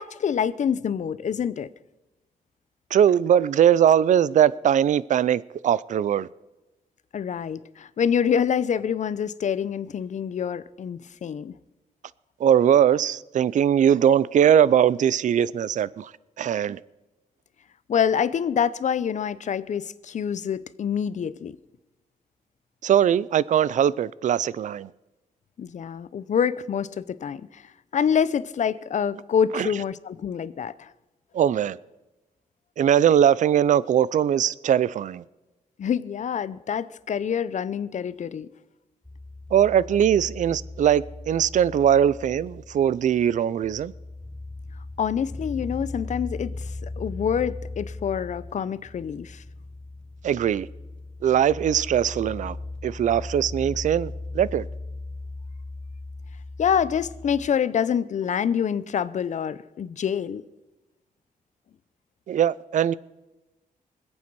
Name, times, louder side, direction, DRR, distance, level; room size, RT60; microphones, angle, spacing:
voice 1, 0.0-1.7 7.1-11.6 17.9-21.6 25.6-30.9 35.8-38.5 45.0-49.4 56.6-60.4, left 7 dB, 55° left, 0.6 m, -26 dB
voice 2, 2.9-6.3 12.4-16.1 16.4-16.8 22.8-24.9 29.5-29.7 31.3-31.8 32.8-35.2 39.5-43.9 50.2-50.7 51.2-52.6 52.8-54.7 62.3-62.9, right 9 dB, 60° right, 0.4 m, -21 dB
sound 1, 39.0-57.5, left 2 dB, 5° left, 0.6 m, -38 dB
25.0 x 8.6 x 4.7 m
wide cardioid pair, 135°, 15 cm